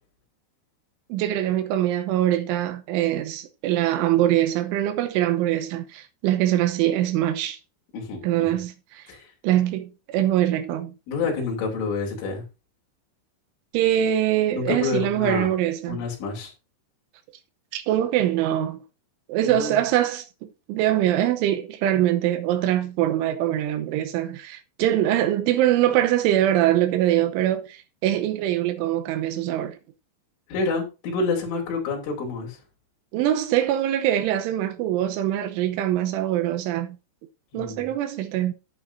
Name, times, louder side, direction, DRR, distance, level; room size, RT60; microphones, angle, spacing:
voice 1, 1.1-7.6 8.2-9.1 9.4-10.9 13.7-16.0 17.7-18.8 19.3-29.8 33.1-37.0 37.5-38.5, right 12 dB, 90° right, 3.4 m, -23 dB
voice 2, 7.9-8.6 9.1-9.3 11.1-12.4 14.5-15.5 15.9-16.5 19.4-19.8 30.5-32.6 37.5-37.9, left 4 dB, 80° left, 5.6 m, -28 dB
11.5 x 9.7 x 2.7 m
omnidirectional pair, 5.5 m